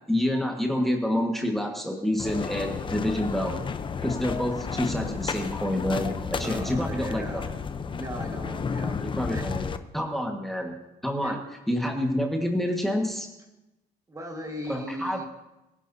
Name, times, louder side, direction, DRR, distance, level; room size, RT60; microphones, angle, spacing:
voice 1, 0.1-3.6 4.0-7.4 9.2-9.6 9.9-10.7 11.0-11.4 11.7-13.3 14.7-15.2, left 1 dB, ahead, 1 dB, 1.6 m, -28 dB
sound 1, 2.2-9.8, left 5 dB, 30° left, 0.7 m, -32 dB
voice 2, 6.4-7.5 7.9-9.0 9.3-9.6 11.2-11.4 14.1-15.2, equal, 20° right, 3 dB, 1.8 m, -37 dB
24.0 x 11.0 x 2.8 m, 0.97 s
cardioid pair, 110°, 17 cm